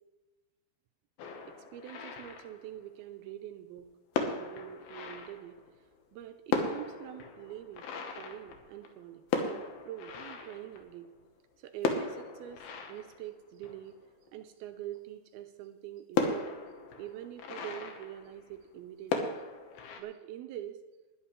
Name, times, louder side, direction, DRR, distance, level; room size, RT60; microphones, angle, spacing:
sound 1, 1.2-3.0 3.8-3.9 4.1-5.9 6.2-6.3 6.5-11.2 11.8-14.4 15.0-15.1 15.4-15.5 16.2-18.8 19.1-20.0, left 5 dB, 70° left, 2.8 m, -36 dB
voice 1, 1.5-3.9 4.2-5.9 6.1-14.0 14.3-16.6 17.0-19.4 20.0-20.8, right 12 dB, 85° right, 7 dB, 2.2 m, -45 dB
20.5 x 11.0 x 3.3 m, 1.2 s
omnidirectional pair, 5.0 m